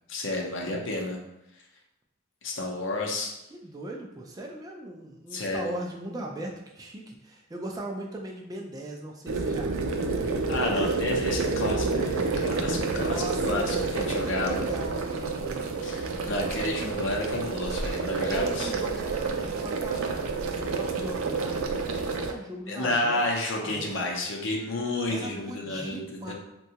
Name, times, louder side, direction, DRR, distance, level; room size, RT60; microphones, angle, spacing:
voice 1, 0.1-1.2 2.4-3.4 5.3-5.7 10.5-14.7 15.8-18.7 22.7-26.0 26.3-26.4, left 2 dB, 65° left, 0 dB, 0.6 m, -30 dB
voice 2, 3.6-10.7 12.9-13.8 14.2-17.1 18.2-21.9 22.2-23.3 23.6-24.1 25.0-26.3, right 1 dB, 20° right, 0 dB, 0.3 m, -39 dB
sound 1, 9.3-22.3, right 4 dB, 85° right, 0.4 m, -29 dB
3.6 x 2.2 x 2.8 m, 0.88 s
head